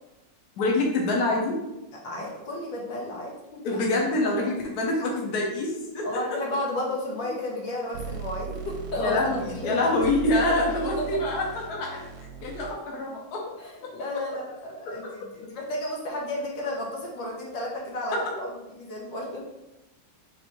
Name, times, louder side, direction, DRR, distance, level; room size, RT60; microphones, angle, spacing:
voice 1, 0.6-1.6 3.6-6.4 9.0-12.0 12.4-13.4 13.8-13.9 14.9-15.0, left 2 dB, 60° left, -2 dB, 1.3 m, -26 dB
voice 2, 2.0-3.8 6.0-10.0 10.5-10.6 11.0-11.1 13.6-19.4, left 1 dB, 75° left, -3 dB, 1.7 m, -33 dB
sound 1, 7.9-12.7, right 7 dB, 80° right, 1.3 m, -38 dB
4.3 x 2.7 x 4.4 m, 0.96 s
omnidirectional pair, 2.1 m